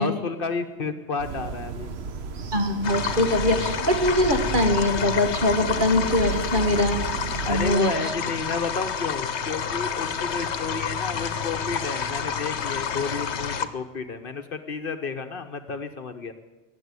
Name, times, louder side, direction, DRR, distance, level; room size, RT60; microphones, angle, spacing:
voice 1, 0.0-2.0 7.5-16.3, left 4 dB, 55° left, 8 dB, 1.1 m, -31 dB
sound 1, 1.2-7.8, right 5 dB, 70° right, 1.1 m, -33 dB
voice 2, 2.5-7.1 7.5-7.9, left 1 dB, 50° right, 4 dB, 1.9 m, -22 dB
sound 2, 2.8-13.7, left 6 dB, 75° left, 1.2 m, -29 dB
19.0 x 7.5 x 9.6 m, 1.2 s
omnidirectional pair, 1.1 m